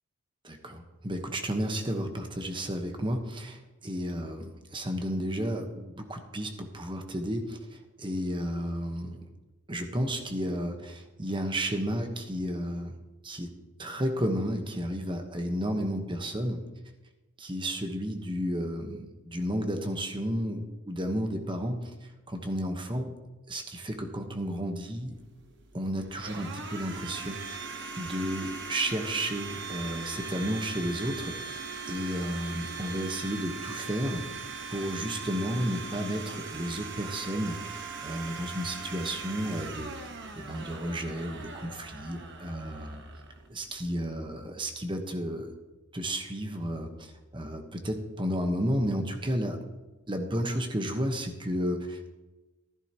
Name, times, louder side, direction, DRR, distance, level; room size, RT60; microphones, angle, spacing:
voice 1, 0.4-9.2 9.7-12.9 13.2-13.5 13.8-16.6 17.4-23.1 23.5-25.2 25.7-27.6 28.0-39.9 40.3-43.0 43.5-45.5 45.9-49.6 50.1-52.1, equal, 20° right, 5 dB, 1.2 m, -32 dB
Domestic sounds home sounds, 25.1-44.0, right 4 dB, 55° right, 1.3 m, -40 dB
14.5 x 12.0 x 3.0 m, 1.1 s
head